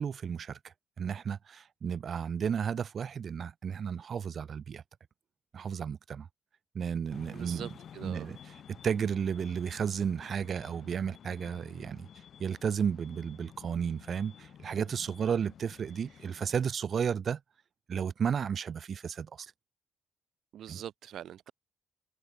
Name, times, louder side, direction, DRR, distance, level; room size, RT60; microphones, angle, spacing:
voice 1, 0.0-4.8 5.5-6.3 6.7-7.7 8.0-8.5 8.8-12.1 12.4-17.4 17.9-19.5 20.7-20.8, right 7 dB, 50° right, 1.8 m, -33 dB
sound 1, 7.1-16.7, left 8 dB, 60° left, 5.8 m, -52 dB
voice 2, 7.3-8.3 20.5-21.5, right 11 dB, 70° right, 1.5 m, -43 dB
cardioid pair, 90°, 0 cm